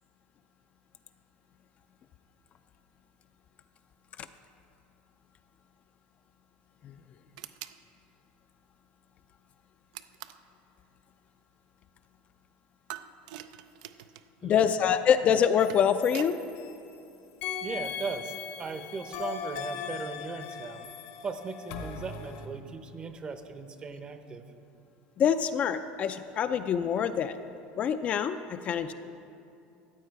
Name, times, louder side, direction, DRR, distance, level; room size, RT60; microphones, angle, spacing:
sound 1, 7.4-7.8 9.9-10.5 12.9-14.3 15.4-16.4, right 12 dB, 85° right, 0.4 m, -44 dB
voice 1, 14.4-16.4 25.2-27.4 27.8-28.9, left 8 dB, 35° left, 9 dB, 0.4 m, -25 dB
sound 2, 15.6-17.0 17.4-22.5, left 6 dB, 75° left, 1.2 m, -39 dB
voice 2, 17.6-20.8 21.2-24.4, right 4 dB, 25° right, 8 dB, 0.7 m, -38 dB
14.0 x 8.7 x 4.7 m, 2.6 s
cardioid pair, 140°, 4 cm